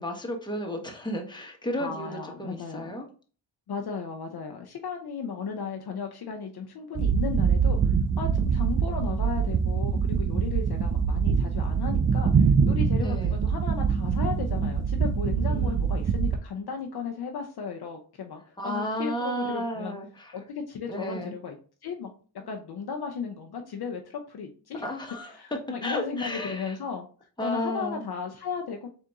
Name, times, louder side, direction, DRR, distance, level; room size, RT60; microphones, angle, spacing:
voice 1, 0.0-3.1 13.0-13.4 15.5-15.8 18.6-20.4 20.9-21.3 24.8-25.3 25.8-26.8 27.4-28.1, equal, 10° left, 2 dB, 1.1 m, -33 dB
voice 2, 1.8-2.9 3.7-20.0 20.3-21.6 21.8-22.1 22.5-24.8 25.4-27.0 27.4-28.9, left 6 dB, 50° left, 3 dB, 0.7 m, -35 dB
sound 1, 6.9-16.4, right 6 dB, 25° right, 0.4 m, -24 dB
3.8 x 2.7 x 3.5 m, 0.40 s
cardioid pair, 65°, 49 cm